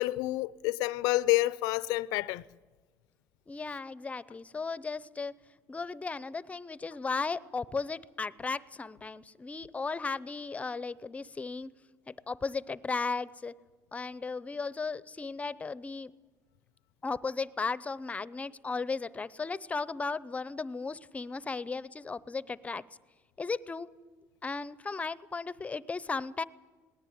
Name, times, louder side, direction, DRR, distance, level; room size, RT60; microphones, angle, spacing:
voice 1, 0.0-2.4, left 19 dB, 75° left, 0.6 m, -28 dB
voice 2, 3.5-5.4 5.7-11.7 12.1-13.5 13.9-16.1 17.0-22.8 23.4-23.9 24.4-26.4, left 4 dB, 20° left, 0.7 m, -35 dB
19.0 x 19.0 x 9.4 m
supercardioid pair, 95°, 7 cm